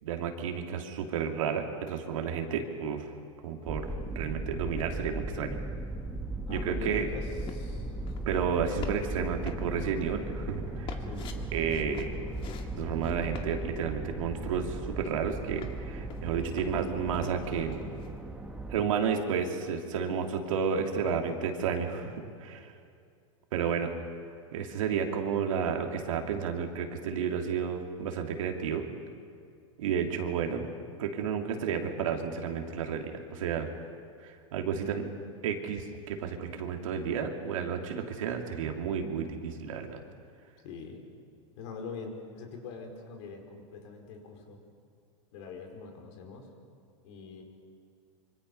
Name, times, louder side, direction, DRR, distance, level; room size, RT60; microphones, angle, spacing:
voice 1, 0.0-3.1 3.4-5.6 6.5-7.1 8.3-11.0 11.5-12.1 12.8-17.8 18.7-22.7 23.5-23.9 24.5-28.9 29.8-30.7 31.0-33.7 34.2-35.1 35.4-40.0, right 7 dB, 75° right, 3 dB, 3.0 m, -31 dB
sound 1, 3.6-18.8, right 2 dB, 5° right, 2.0 m, -37 dB
voice 2, 6.5-7.9 11.0-11.5 40.6-41.0 41.6-44.6 45.3-46.5 47.0-47.4, left 4 dB, 60° left, 2 dB, 5.1 m, -43 dB
sound 2, 7.4-7.7 8.1-8.4 8.8-9.2 9.5-9.9 10.9-11.4 11.7-12.7 13.0-13.5 14.7-14.8 15.1-15.7 16.1-17.5 17.7-18.1, left 7 dB, 30° left, 2.0 m, -45 dB
25.5 x 25.5 x 5.6 m, 2.3 s
supercardioid pair, 135°, 17 cm